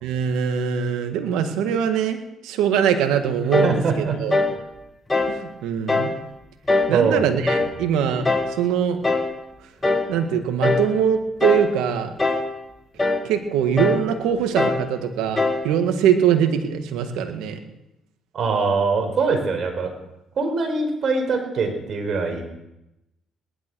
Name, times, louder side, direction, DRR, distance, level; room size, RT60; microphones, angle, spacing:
voice 1, 0.0-2.2 2.4-4.3 5.3-6.1 6.9-8.3 8.6-9.0 10.1-12.1 13.2-17.6, right 8 dB, 85° right, 7 dB, 1.8 m, -22 dB
sound 1, 3.5-3.8 4.3-4.6 5.1-5.4 5.9-6.2 6.7-7.0 7.5-7.8 8.3-8.5 9.0-9.3 9.8-10.1 10.6-10.9 11.4-11.7 12.2-12.5 13.0-13.3 13.8-14.1 14.6-14.9 15.4-15.7, left 3 dB, 20° left, 2.2 m, -21 dB
voice 2, 3.6-4.2 6.9-7.2 18.3-19.9 20.4-22.4, right 4 dB, 55° right, 5 dB, 4.7 m, -22 dB
19.0 x 12.0 x 6.3 m, 0.90 s
supercardioid pair, 75°, 0 cm